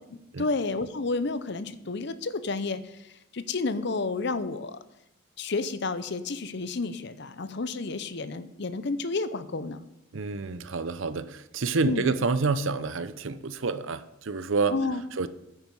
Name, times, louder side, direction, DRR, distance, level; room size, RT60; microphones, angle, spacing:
voice 1, 0.1-4.8 5.4-9.8 11.8-12.1 14.7-15.0, left 3 dB, 55° left, 13 dB, 0.7 m, -31 dB
voice 2, 10.1-14.8 15.2-15.3, right 4 dB, 70° right, 13 dB, 0.7 m, -28 dB
9.5 x 9.3 x 5.4 m, 0.84 s
head